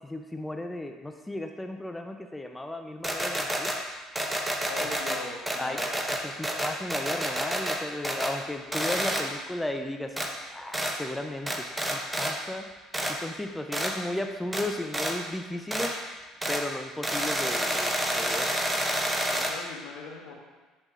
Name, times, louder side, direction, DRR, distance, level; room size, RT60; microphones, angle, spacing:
voice 1, 0.0-3.7 5.6-5.8 6.1-10.2 10.5-11.7 11.9-12.7 13.1-15.9 16.5-18.5, left 1 dB, 10° left, 5 dB, 0.5 m, -35 dB
sound 1, 3.0-3.8 4.2-5.2 5.5-7.8 8.0-8.4 8.7-9.2 10.2-10.3 10.7-10.9 11.5-12.3 12.9-13.1 13.7-13.9 14.5-14.6 14.9-15.1 15.7-15.9 16.4-16.6 17.0-19.5, right 1 dB, 10° right, 1.0 m, -29 dB
voice 2, 4.7-6.0 19.3-20.3, left 4 dB, 70° left, 0 dB, 1.3 m, -40 dB
10.5 x 5.3 x 2.5 m, 1.3 s
hypercardioid pair, 65°, 0 cm